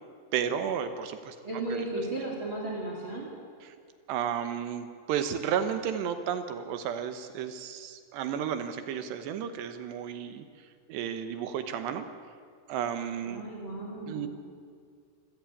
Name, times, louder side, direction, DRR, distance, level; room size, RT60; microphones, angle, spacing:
voice 1, 0.3-1.4 1.7-1.8 3.6-3.7 4.1-12.1 12.7-13.4 14.1-14.3, right 8 dB, 75° right, 9 dB, 3.0 m, -33 dB
voice 2, 1.4-3.3 13.2-14.3, right 2 dB, 30° right, -1 dB, 3.0 m, -35 dB
26.0 x 14.5 x 8.5 m, 2.2 s
omnidirectional pair, 5.2 m